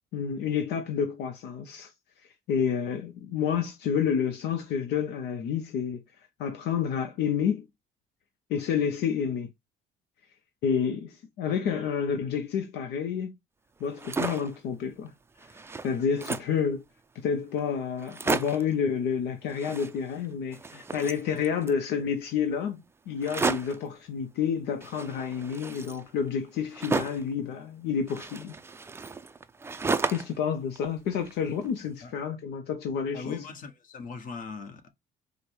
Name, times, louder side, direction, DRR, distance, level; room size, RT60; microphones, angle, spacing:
voice 1, 0.1-1.9 2.5-6.0 6.4-7.7 8.5-9.5 10.6-13.3 13.8-15.1 15.8-16.8 17.1-22.8 23.1-28.6 30.1-33.4, left 7 dB, 80° left, 0.7 m, -29 dB
sound 1, 13.8-14.6 15.1-15.2 15.4-16.6 17.3-17.4 17.6-17.7 18.0-18.7 19.5-20.3 20.5-21.8 23.2-23.9 24.8-27.3 28.1-30.4 30.8-31.7, right 4 dB, 15° right, 0.4 m, -33 dB
voice 2, 33.1-34.9, left 5 dB, 55° left, 1.2 m, -40 dB
4.8 x 2.1 x 4.6 m
cardioid pair, 110°, 17 cm